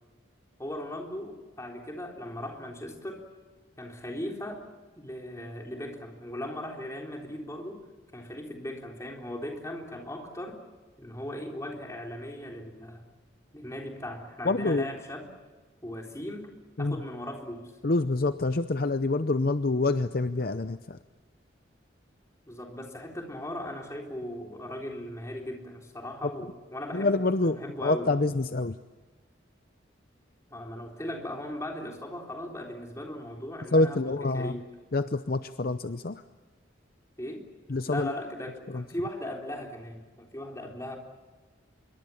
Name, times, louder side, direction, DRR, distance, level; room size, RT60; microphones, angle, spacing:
voice 1, 0.6-3.2 3.8-4.6 5.0-7.8 8.1-10.6 11.0-13.1 13.5-15.3 15.8-16.5 16.8-17.7 22.5-28.1 30.5-34.7 37.2-37.4 37.9-41.0, left 1 dB, 15° left, 1 dB, 3.7 m, -38 dB
voice 2, 14.4-14.9 16.8-17.0 17.8-21.0 26.9-28.8 33.7-34.6 34.9-36.2 37.7-38.1 38.7-38.8, left 2 dB, 50° left, 11 dB, 0.7 m, -26 dB
26.0 x 23.5 x 7.2 m, 1.4 s
head